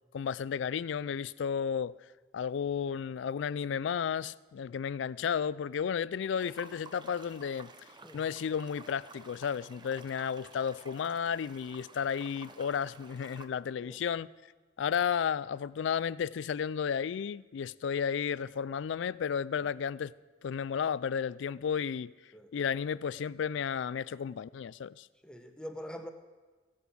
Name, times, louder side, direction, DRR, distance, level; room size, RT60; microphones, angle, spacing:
voice 1, 0.1-1.9 2.3-7.7 8.1-14.3 14.8-20.1 20.4-22.1 22.5-25.1, left 7 dB, 70° left, 0.3 m, -33 dB
sound 1, 6.3-13.5, right 4 dB, 25° right, 0.7 m, -52 dB
voice 2, 25.2-26.1, equal, 5° left, 0.9 m, -43 dB
16.5 x 8.4 x 6.2 m
head